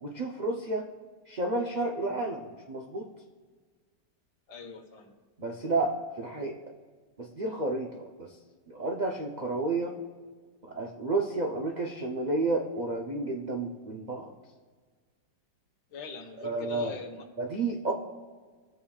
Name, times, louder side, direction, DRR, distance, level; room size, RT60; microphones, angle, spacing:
voice 1, 0.0-0.9 1.3-3.1 5.4-6.6 7.2-8.3 8.7-9.9 10.6-14.3 16.4-17.0 17.4-17.9, right 2 dB, 70° right, 0 dB, 0.4 m, -31 dB
voice 2, 4.5-5.1 15.9-17.2, left 5 dB, 85° left, 3 dB, 2.0 m, -41 dB
21.0 x 7.1 x 2.4 m, 1.5 s
omnidirectional pair, 1.9 m